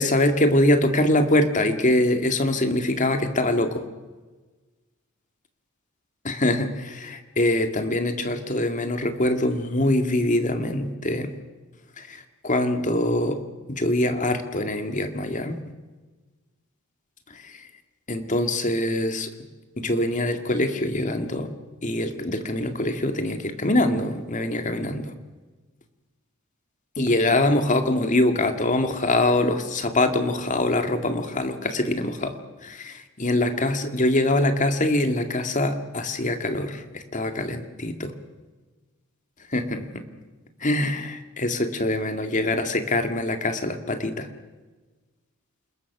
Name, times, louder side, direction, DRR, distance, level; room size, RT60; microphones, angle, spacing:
voice 1, 0.0-3.8 6.2-11.3 12.0-13.4 13.7-15.6 18.1-19.3 19.8-21.5 21.8-25.1 27.0-32.4 32.6-38.1 39.5-39.9 40.6-44.3, left 1 dB, 35° left, 7 dB, 2.2 m, -24 dB
29.0 x 20.5 x 6.1 m, 1.3 s
head